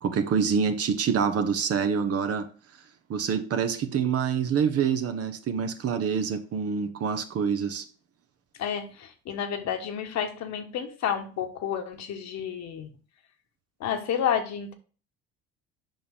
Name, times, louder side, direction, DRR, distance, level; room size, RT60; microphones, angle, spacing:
voice 1, 0.0-2.5 3.1-7.8, right 6 dB, 50° right, 1.1 m, -26 dB
voice 2, 8.6-12.9 13.8-14.7, left 8 dB, 60° left, 1.4 m, -30 dB
7.6 x 5.5 x 3.6 m
hypercardioid pair, 70°, 32 cm